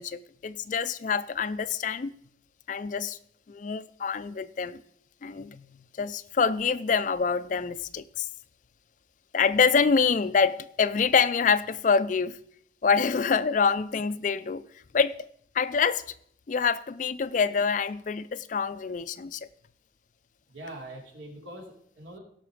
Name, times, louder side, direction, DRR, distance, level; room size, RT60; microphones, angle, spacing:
voice 1, 0.0-2.1 2.7-3.2 3.5-4.8 5.2-5.7 6.0-8.3 9.3-12.3 12.8-14.6 14.9-15.3 15.5-16.0 16.5-19.5, left 5 dB, 40° left, 0.4 m, -26 dB
voice 2, 20.5-22.2, right 1 dB, 80° right, 3.2 m, -43 dB
17.5 x 5.8 x 4.9 m
head